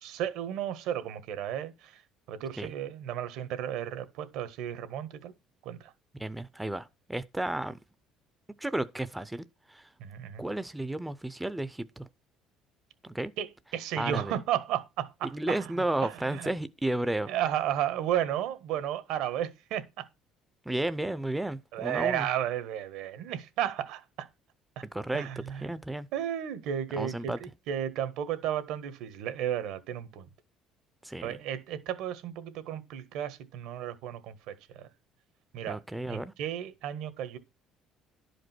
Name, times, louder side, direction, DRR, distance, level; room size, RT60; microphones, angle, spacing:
voice 1, 0.0-2.0 2.3-5.3 5.6-5.9 10.0-10.4 13.4-13.5 13.7-16.5 17.3-20.1 21.7-24.3 24.7-24.8 25.1-25.8 26.1-30.3 31.2-34.9 35.5-35.8 36.1-37.4, right 10 dB, 75° right, 1.6 m, -33 dB
voice 2, 6.2-7.8 8.6-9.9 10.4-12.1 13.0-13.3 14.0-14.3 15.3-17.3 20.7-22.3 24.9-26.1 26.9-27.4 31.0-31.4 35.7-36.3, right 1 dB, 5° right, 0.5 m, -33 dB
11.5 x 5.1 x 6.1 m
cardioid pair, 145°, 0 cm